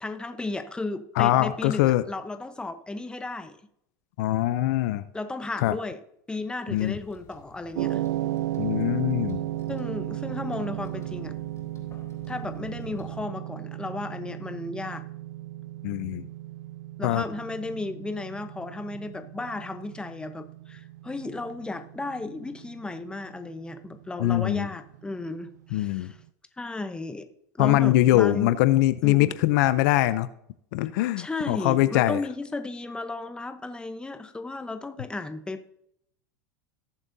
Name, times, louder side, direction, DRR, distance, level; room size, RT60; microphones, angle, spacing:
voice 1, 0.0-3.6 5.1-6.0 6.3-8.0 9.7-11.4 12.3-15.0 17.0-26.1 26.6-27.3 27.5-28.6 29.0-29.3 31.2-35.7, left 2 dB, 10° left, 9 dB, 0.9 m, -34 dB
voice 2, 1.2-2.0 4.2-5.1 5.6-5.7 6.7-7.0 8.6-9.4 15.8-16.3 17.0-17.2 24.2-24.7 25.7-26.1 27.6-30.3 30.7-32.2, left 15 dB, 70° left, 14 dB, 0.5 m, -22 dB
sound 1, 6.7-13.2, left 4 dB, 30° left, 3.6 m, -52 dB
sound 2, 7.8-26.0, right 15 dB, 90° right, 0.4 m, -35 dB
18.0 x 7.3 x 2.7 m, 0.74 s
supercardioid pair, 110°, 9 cm